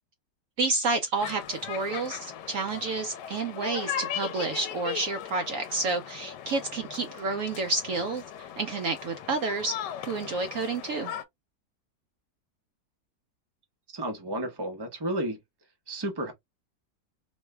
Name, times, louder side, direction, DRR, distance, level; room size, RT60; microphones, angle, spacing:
voice 1, 0.6-9.7 10.0-11.1, right 3 dB, 75° right, 0.7 m, -30 dB
sound 1, 1.2-11.2, left 10 dB, 80° left, 1.2 m, -38 dB
voice 2, 13.9-15.4 15.9-16.3, right 1 dB, 30° right, 0.4 m, -32 dB
3.0 x 2.2 x 3.1 m
omnidirectional pair, 1.8 m